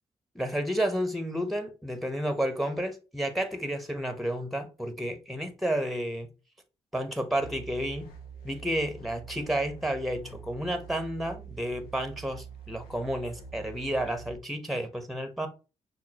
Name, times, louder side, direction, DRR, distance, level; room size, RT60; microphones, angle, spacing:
voice 1, 0.3-6.3 6.9-8.1 8.4-15.5, right 1 dB, ahead, 0.9 m, -31 dB
sound 1, 7.4-14.3, right 5 dB, 90° left, 0.6 m, -45 dB
6.0 x 2.0 x 2.9 m
hypercardioid pair, 45°, 15 cm